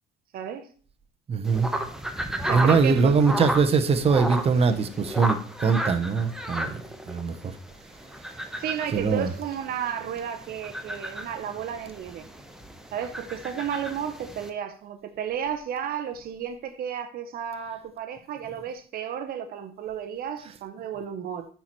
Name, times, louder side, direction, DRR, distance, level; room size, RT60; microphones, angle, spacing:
voice 1, 0.3-0.7 2.4-3.2 8.6-12.3 12.9-21.5, right 8 dB, 60° right, 0.7 m, -33 dB
voice 2, 1.3-1.7 2.5-6.8 7.1-7.5 8.9-9.3, right 5 dB, 35° right, 0.9 m, -22 dB
sound 1, 1.4-14.5, right 1 dB, 5° right, 1.0 m, -34 dB
9.3 x 4.5 x 4.5 m
cardioid pair, 110°, 17 cm